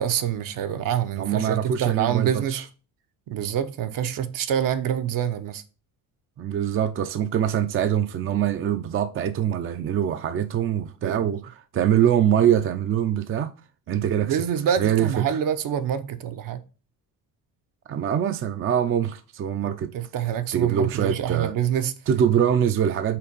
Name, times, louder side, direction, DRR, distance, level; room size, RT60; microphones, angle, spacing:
voice 1, 0.0-2.6 3.3-5.6 11.0-11.3 13.9-14.0 14.3-16.6 19.6-21.9, right 9 dB, 60° right, 0.8 m, -26 dB
voice 2, 1.2-2.6 6.4-13.5 13.9-14.4 14.8-15.4 17.9-19.9 20.5-21.5 22.1-23.2, right 9 dB, 35° right, 0.5 m, -23 dB
5.8 x 3.9 x 5.1 m
cardioid pair, 125°, 37 cm